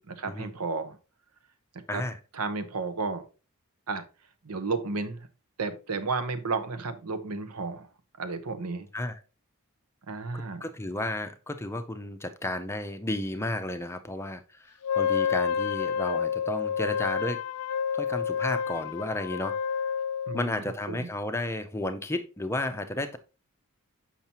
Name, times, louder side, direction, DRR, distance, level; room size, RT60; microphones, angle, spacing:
voice 1, 0.1-1.0 1.9-2.0 2.3-3.3 3.9-4.0 4.4-5.3 5.6-7.9 8.2-8.9 10.1-10.6 20.3-20.6 20.9-21.1, right 4 dB, 90° right, 0.8 m, -32 dB
voice 2, 1.9-2.2 8.9-9.2 10.3-17.4 17.9-19.6 20.3-23.2, left 1 dB, 10° left, 0.5 m, -33 dB
Wind instrument woodwind instrument, 14.8-20.4, left 7 dB, 90° left, 0.4 m, -29 dB
7.0 x 5.7 x 2.9 m
head